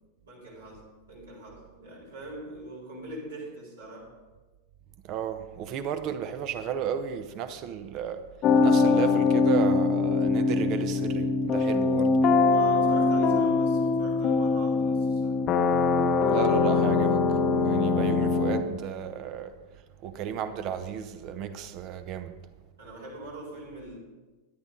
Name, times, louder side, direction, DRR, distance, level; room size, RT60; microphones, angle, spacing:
voice 1, 0.2-4.1 12.5-15.4 22.8-24.0, right 1 dB, 65° right, 4.0 m, -42 dB
voice 2, 5.0-8.3 8.6-12.2 16.2-19.5 20.0-22.3, right 8 dB, 40° right, 0.9 m, -33 dB
sound 1, 8.4-18.6, left 4 dB, 35° left, 0.8 m, -23 dB
13.5 x 10.5 x 3.8 m
figure-of-eight pair, 90°, 0 cm